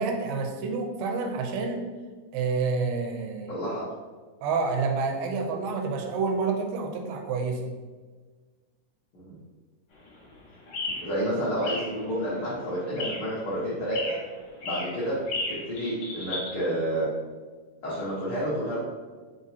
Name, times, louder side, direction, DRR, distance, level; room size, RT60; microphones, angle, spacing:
voice 1, 0.0-1.8 2.3-3.6 4.4-7.7, right 4 dB, 85° right, 3 dB, 2.2 m, -28 dB
voice 2, 3.5-3.8 9.1-9.3 11.0-14.2 14.6-15.2 15.5-17.1 17.8-18.8, equal, 80° left, -9 dB, 1.2 m, -29 dB
sound 1, 9.9-16.5, left 2 dB, 55° left, 1.9 m, -36 dB
5.4 x 3.0 x 2.7 m, 1.4 s
omnidirectional pair, 4.0 m